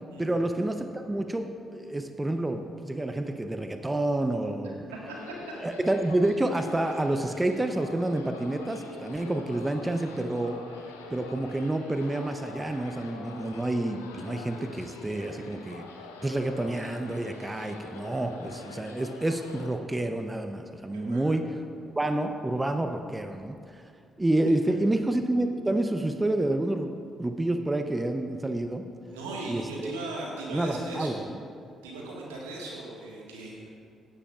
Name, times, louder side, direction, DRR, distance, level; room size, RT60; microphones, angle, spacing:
voice 1, 0.2-4.9 5.6-10.6 11.1-15.8 16.2-21.5 22.0-23.8 24.2-28.9 29.5-29.9 30.5-31.2, right 1 dB, 20° right, 6 dB, 0.8 m, -29 dB
sound 1, 5.1-19.7, left 3 dB, 85° left, 0.7 m, -45 dB
voice 2, 20.9-21.3 24.5-24.8 29.1-31.2 31.8-33.7, right 2 dB, 80° right, -3 dB, 1.7 m, -38 dB
16.5 x 11.0 x 2.5 m, 2.4 s
figure-of-eight pair, 40°, 0 cm